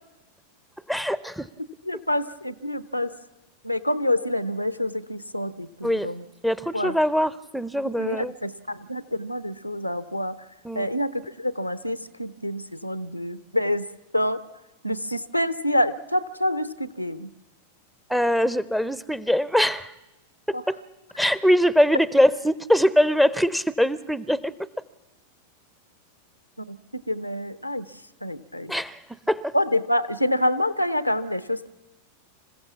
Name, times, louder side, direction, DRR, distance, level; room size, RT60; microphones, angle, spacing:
voice 1, 0.9-1.5 5.8-6.1 6.4-8.3 10.6-10.9 18.1-19.9 20.7-20.8 21.2-24.5 28.7-29.0 29.3-29.5, equal, ahead, 18 dB, 0.7 m, -22 dB
voice 2, 1.9-3.1 3.6-6.2 6.7-7.0 7.8-10.3 10.7-13.9 14.1-14.4 14.8-17.3 20.5-20.6 26.7-26.8 27.1-27.9 28.2-28.7 29.5-31.7, left 1 dB, 90° left, 14 dB, 0.7 m, -27 dB
26.5 x 15.5 x 7.2 m, 1.0 s
figure-of-eight pair, 90°, 0 cm